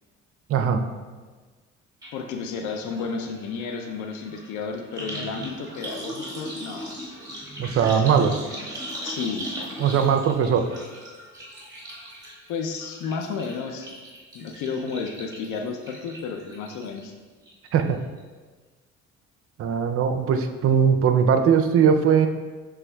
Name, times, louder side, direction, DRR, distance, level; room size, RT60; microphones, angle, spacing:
voice 1, 0.5-0.8 7.6-8.4 9.8-10.7 17.7-18.0 19.6-22.3, right 7 dB, 50° right, 7 dB, 0.5 m, -20 dB
sound 1, 2.0-2.1 2.4-17.0 17.4-17.9 18.2-18.3, equal, 10° right, 1.5 m, -39 dB
voice 2, 2.1-7.0 9.0-9.5 12.5-13.9 14.3-17.1, left 5 dB, 80° left, 4 dB, 0.5 m, -32 dB
6.8 x 3.3 x 2.2 m, 1.4 s
supercardioid pair, 85°, 30 cm